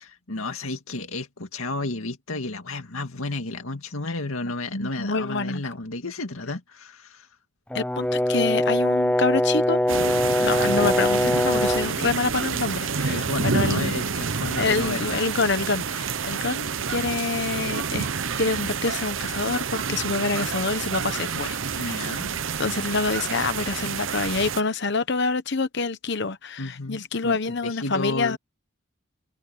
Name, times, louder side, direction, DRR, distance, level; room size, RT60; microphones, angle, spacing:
voice 1, 0.0-7.3 12.9-15.3 21.8-22.4 26.6-27.4 27.6-28.4, left 2 dB, 85° left, 2.1 m, -32 dB
voice 2, 4.7-5.6 7.7-10.0 10.4-13.9 14.6-18.1 18.4-22.0 22.6-28.4, left 3 dB, 55° left, 1.0 m, -27 dB
Brass instrument, 7.7-11.9, left 1 dB, 5° left, 0.4 m, -22 dB
sound 1, 9.9-24.6, right 6 dB, 65° right, 0.8 m, -28 dB
open air
head